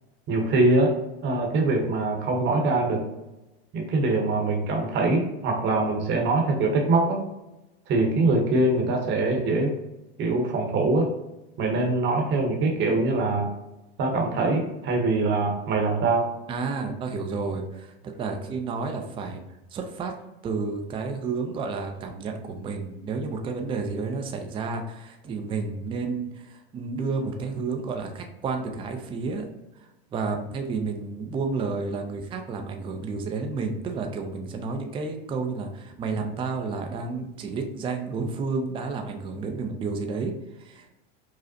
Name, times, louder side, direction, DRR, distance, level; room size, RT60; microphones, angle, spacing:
voice 1, 0.3-1.0 1.2-3.1 3.7-7.2 7.9-9.7 10.2-11.1 11.6-13.5 14.0-16.3, right 2 dB, 35° right, 1 dB, 0.9 m, -23 dB
voice 2, 16.5-19.4 19.7-20.1 20.4-29.5 29.8-41.0, right 4 dB, 15° right, 4 dB, 0.4 m, -31 dB
5.0 x 2.0 x 2.7 m, 0.98 s
hypercardioid pair, 115°, 33 cm